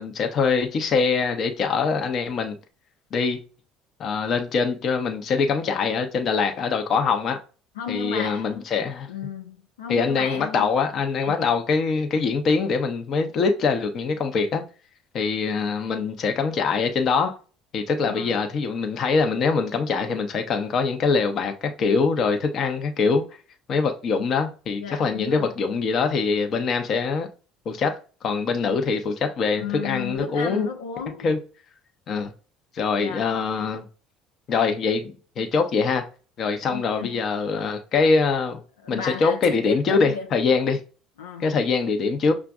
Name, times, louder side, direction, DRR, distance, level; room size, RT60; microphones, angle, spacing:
voice 1, 0.0-2.6 3.1-3.4 4.0-7.4 7.9-9.1 9.9-14.6 15.1-17.4 17.7-23.2 23.7-27.3 27.7-28.0 28.2-30.7 31.2-31.4 32.1-32.3 32.7-33.8 34.5-36.0 36.4-38.6 38.9-40.8 41.4-42.3, left 4 dB, 50° left, 0.8 m, -23 dB
voice 2, 7.8-8.5 9.1-10.7 11.3-11.5 18.0-18.3 24.8-25.5 29.6-31.3 33.0-33.3 36.7-37.2 38.8-40.3 41.2-41.5, left 7 dB, 90° left, 0.5 m, -34 dB
5.9 x 2.4 x 2.4 m
hypercardioid pair, 70°, 0 cm